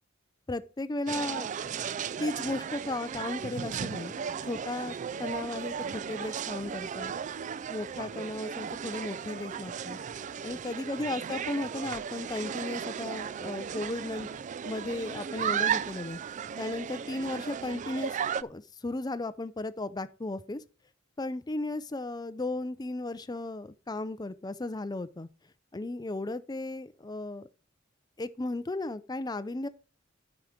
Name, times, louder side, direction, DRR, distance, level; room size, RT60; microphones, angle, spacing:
voice 1, 0.5-1.5 2.2-7.1 7.7-10.0 10.4-14.3 14.6-16.2 16.6-20.6 21.2-25.3 25.7-27.5 28.2-29.7, left 2 dB, 20° left, 0.5 m, -35 dB
sound 1, 1.1-18.4, right 7 dB, 40° right, 0.3 m, -35 dB
9.3 x 5.0 x 6.5 m
head